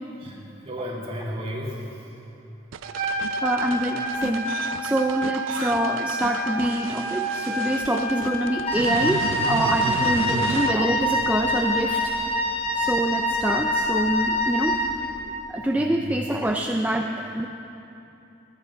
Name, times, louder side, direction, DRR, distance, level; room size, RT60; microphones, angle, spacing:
voice 1, 0.2-2.4 10.1-10.4 15.7-16.1, equal, 30° right, -3 dB, 2.0 m, -35 dB
sound 1, 2.7-10.7, right 6 dB, 85° right, 0.4 m, -34 dB
Trumpet, 2.8-8.6, equal, 45° right, 1.4 m, -30 dB
voice 2, 3.4-4.5 4.8-12.0 12.7-14.8 15.5-17.5, right 1 dB, 10° right, 2 dB, 0.4 m, -25 dB
Wind instrument woodwind instrument, 8.7-15.0, left 1 dB, 30° left, 0.9 m, -25 dB
13.5 x 9.1 x 5.7 m, 2.8 s
head